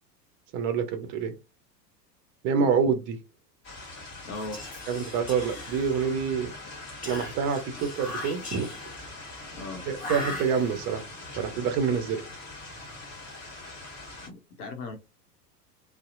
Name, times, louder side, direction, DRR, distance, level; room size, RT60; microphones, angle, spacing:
voice 1, 0.5-1.3 2.4-3.2 4.9-6.5 7.0-8.7 9.9-11.0 11.4-12.2, right 6 dB, 25° right, 0.4 m, -27 dB
sound 1, 3.6-14.3, left 2 dB, 35° left, 1.4 m, -43 dB
voice 2, 4.2-4.6 9.5-9.8 14.3-15.0, left 3 dB, 65° left, 0.8 m, -38 dB
Whispering, 4.3-6.3 7.0-9.1 9.9-11.0, left 2 dB, 15° left, 1.0 m, -39 dB
2.7 x 2.0 x 2.5 m
figure-of-eight pair, 85°, 49 cm